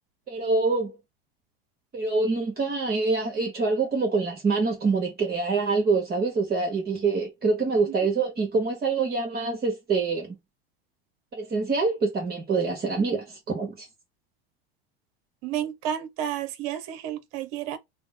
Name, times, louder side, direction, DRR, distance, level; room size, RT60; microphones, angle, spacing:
voice 1, 0.3-0.9 1.9-10.3 11.3-13.9, right 4 dB, 30° right, 1.3 m, -25 dB
voice 2, 15.4-17.8, right 10 dB, 55° right, 0.8 m, -31 dB
3.4 x 2.1 x 3.7 m
hypercardioid pair, 90°, 30 cm